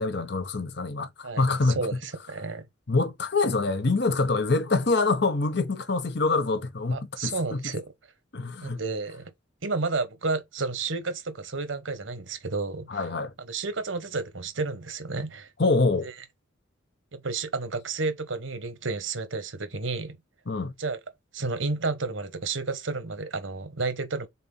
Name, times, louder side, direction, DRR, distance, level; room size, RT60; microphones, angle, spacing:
voice 1, 0.0-1.9 2.9-7.6 8.3-8.8 12.9-13.3 15.6-16.1 20.5-20.8, left 3 dB, 60° left, 0.9 m, -25 dB
voice 2, 1.2-2.6 6.9-7.8 8.6-9.3 9.6-13.1 13.4-15.5 16.0-16.1 17.1-20.2 20.8-21.0 21.3-24.3, right 3 dB, 85° right, 1.2 m, -31 dB
4.3 x 4.1 x 5.4 m
head